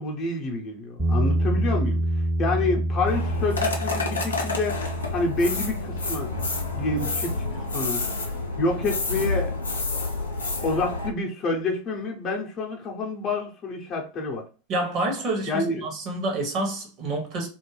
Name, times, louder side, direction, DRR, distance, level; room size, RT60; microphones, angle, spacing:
voice 1, 0.0-2.0 2.4-4.8 5.1-6.3 6.7-8.1 8.6-9.6 10.6-14.5 15.5-15.9, left 2 dB, 35° left, 0.7 m, -28 dB
Bass guitar, 1.0-7.2, right 1 dB, 10° right, 0.7 m, -27 dB
sound 1, 3.0-11.1, left 3 dB, 75° left, 0.5 m, -29 dB
voice 2, 14.7-17.5, right 2 dB, 40° right, 0.9 m, -28 dB
2.4 x 2.1 x 3.2 m
figure-of-eight pair, 85°, 0 cm